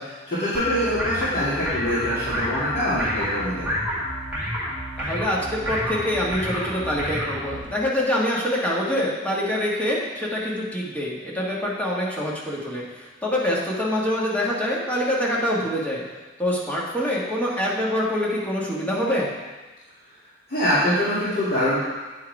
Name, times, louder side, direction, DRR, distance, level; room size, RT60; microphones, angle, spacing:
voice 1, 0.0-3.7 20.5-21.8, equal, 50° left, -13 dB, 2.4 m, -24 dB
sound 1, 0.5-7.7, equal, 10° right, 1.7 m, -29 dB
voice 2, 5.0-16.0 16.4-19.3, left 1 dB, 10° left, -5 dB, 1.6 m, -25 dB
9.5 x 4.7 x 4.8 m, 1.3 s
head